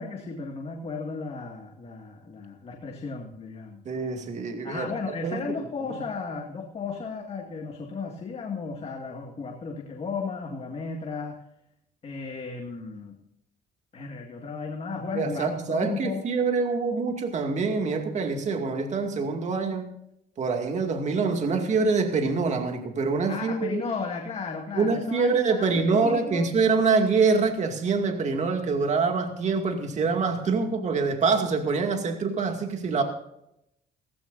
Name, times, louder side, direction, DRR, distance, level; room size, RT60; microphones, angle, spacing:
voice 1, 0.0-3.8 4.6-11.4 12.0-13.2 13.9-16.2 23.3-26.5, left 4 dB, 35° left, 2 dB, 2.1 m, -34 dB
voice 2, 3.9-5.4 5.8-6.0 15.1-19.9 20.4-23.8 24.7-33.0, right 4 dB, 45° right, 4 dB, 2.3 m, -25 dB
17.5 x 16.5 x 2.7 m, 0.81 s
cardioid pair, 110°, 17 cm